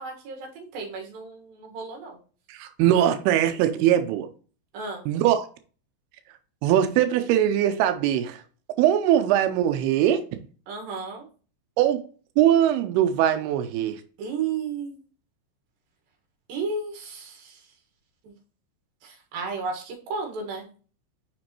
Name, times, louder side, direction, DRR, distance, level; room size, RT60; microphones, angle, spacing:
voice 1, 0.0-2.2 4.7-5.1 10.7-11.2 14.2-15.0 16.5-17.6 18.2-18.3 19.0-20.7, right 4 dB, 60° right, 2.8 m, -33 dB
voice 2, 2.5-4.3 5.1-5.5 6.6-8.4 8.8-10.2 11.8-12.0 12.4-14.0, right 11 dB, 90° right, 2.2 m, -21 dB
6.1 x 5.2 x 2.9 m
omnidirectional pair, 5.3 m